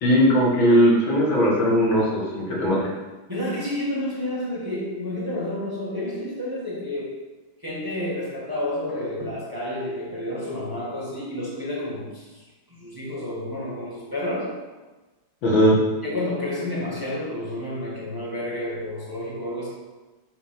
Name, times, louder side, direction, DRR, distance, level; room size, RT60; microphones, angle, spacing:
voice 1, 0.0-2.9 15.4-15.8, equal, 75° left, -4 dB, 2.3 m, -19 dB
voice 2, 3.3-7.2 7.6-12.2 12.8-14.7 16.0-19.7, left 1 dB, 10° right, -6 dB, 1.4 m, -30 dB
6.8 x 3.7 x 5.8 m, 1.2 s
omnidirectional pair, 2.1 m